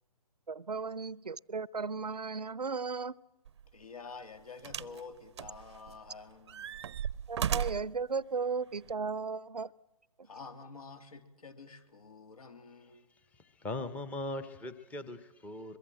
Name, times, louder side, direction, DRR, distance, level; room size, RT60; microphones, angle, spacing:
voice 1, 0.5-3.2 7.3-9.7, right 5 dB, 90° right, 22 dB, 0.7 m, -35 dB
sound 1, 3.5-3.6 4.6-5.0 5.4-6.1 6.5-8.0 8.9-9.0, right 9 dB, 45° right, 0.7 m, -35 dB
voice 2, 3.7-6.8 10.2-13.1, left 4 dB, 65° left, 9 dB, 3.1 m, -49 dB
voice 3, 13.3-15.8, left 2 dB, 5° left, 13 dB, 0.9 m, -40 dB
23.0 x 22.5 x 7.7 m, 1.1 s
figure-of-eight pair, 140°, 20 cm